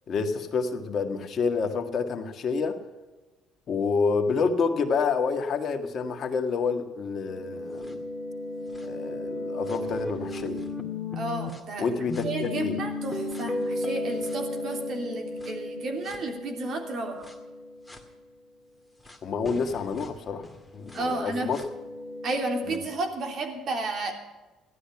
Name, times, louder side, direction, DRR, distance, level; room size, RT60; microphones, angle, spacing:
voice 1, 0.1-2.7 3.7-8.0 8.8-10.7 11.8-12.7 19.2-20.4 20.7-21.6 22.7-22.8, left 5 dB, 50° left, 5 dB, 1.7 m, -28 dB
sound 1, 7.3-11.6 12.1-18.0 19.1-19.2 19.5-22.8, left 2 dB, 5° left, 2.2 m, -35 dB
voice 2, 11.1-17.3 20.9-21.5 22.2-24.1, right 2 dB, 55° right, 4 dB, 3.3 m, -32 dB
15.0 x 12.0 x 5.9 m, 1.2 s
supercardioid pair, 85°, 0 cm